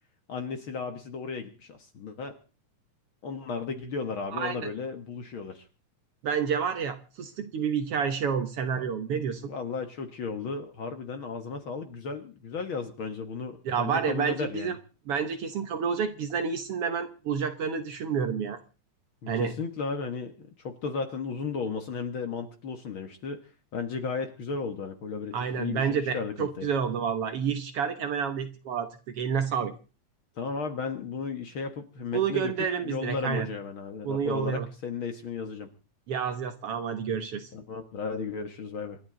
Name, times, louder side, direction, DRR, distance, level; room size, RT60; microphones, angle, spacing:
voice 1, 0.3-2.4 3.2-5.7 9.4-14.8 19.2-23.4 23.7-26.7 30.4-32.5 32.8-35.7 37.5-39.0, left 5 dB, 50° left, 7 dB, 1.8 m, -34 dB
voice 2, 4.3-4.7 6.2-9.4 13.7-14.8 15.1-18.6 19.3-19.5 25.3-28.9 29.2-29.7 32.1-33.5 34.0-34.7 36.1-37.5, right 7 dB, 60° right, 8 dB, 1.8 m, -29 dB
27.5 x 11.5 x 3.9 m, 0.35 s
omnidirectional pair, 3.4 m